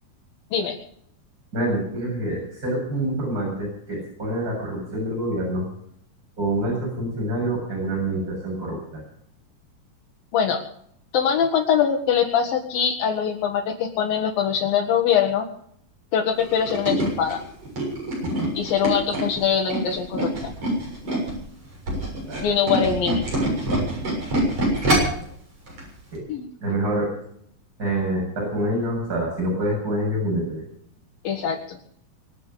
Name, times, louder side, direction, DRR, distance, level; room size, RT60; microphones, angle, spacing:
voice 1, 1.5-5.7 6.4-9.0 18.2-18.5 22.2-22.5 26.1-26.2 26.6-27.1 27.8-30.6, right 1 dB, 25° right, -4 dB, 8.2 m, -26 dB
voice 2, 10.3-10.6 11.1-15.5 16.1-17.4 18.5-20.3 22.4-23.2 26.3-26.5 31.2-31.8, left 8 dB, 75° left, 1 dB, 3.3 m, -22 dB
Tools, 16.4-21.4 21.7-25.2 25.7-25.8 26.1-26.2, right 1 dB, 40° right, 8.0 m, -25 dB
25.0 x 8.4 x 6.8 m, 0.67 s
omnidirectional pair, 4.2 m